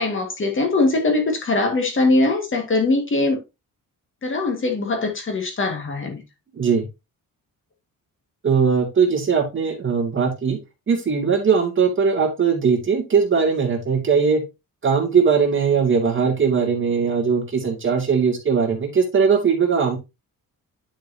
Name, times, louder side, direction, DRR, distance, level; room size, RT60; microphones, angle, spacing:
voice 1, 0.0-3.4 4.2-6.2, left 2 dB, 35° left, 2.0 m, -21 dB
voice 2, 6.5-6.8 8.4-10.6 10.9-14.4 14.8-20.0, right 6 dB, 35° right, 2.5 m, -20 dB
10.0 x 5.3 x 2.8 m
cardioid pair, 145°, 34 cm